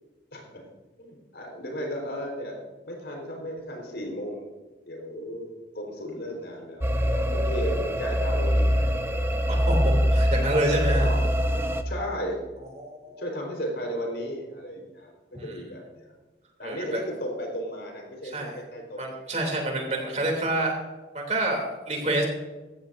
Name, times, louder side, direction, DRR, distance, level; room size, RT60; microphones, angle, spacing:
voice 1, 0.3-0.7 1.0-4.6 4.9-9.0 11.0-11.2 11.8-12.4 13.2-16.1 16.6-19.0 19.8-20.5, equal, 80° left, 0 dB, 4.5 m, -35 dB
sound 1, 6.8-11.8, equal, 15° right, 0.7 m, -23 dB
voice 2, 9.5-11.1 12.8-13.2 15.3-15.4 16.6-17.0 18.3-18.6 19.0-20.7 21.1-22.3, right 1 dB, 40° right, 1 dB, 3.1 m, -27 dB
15.5 x 14.5 x 2.7 m, 1.2 s
head